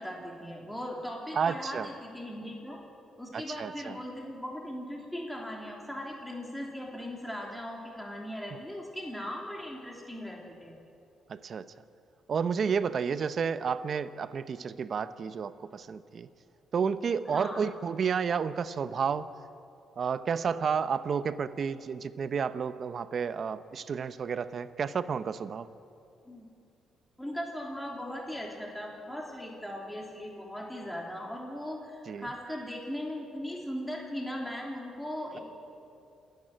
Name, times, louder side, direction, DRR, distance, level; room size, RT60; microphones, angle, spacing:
voice 1, 0.0-2.8 3.2-10.8 17.3-17.6 26.2-26.5 27.2-35.4, equal, 5° left, -1 dB, 3.2 m, -38 dB
voice 2, 1.3-1.9 3.3-4.0 11.3-11.7 12.3-16.3 16.7-19.3 20.0-25.7 32.1-32.3, right 6 dB, 50° right, 13 dB, 0.8 m, -31 dB
27.5 x 10.5 x 9.0 m, 2.7 s
cardioid pair, 90°, 0 cm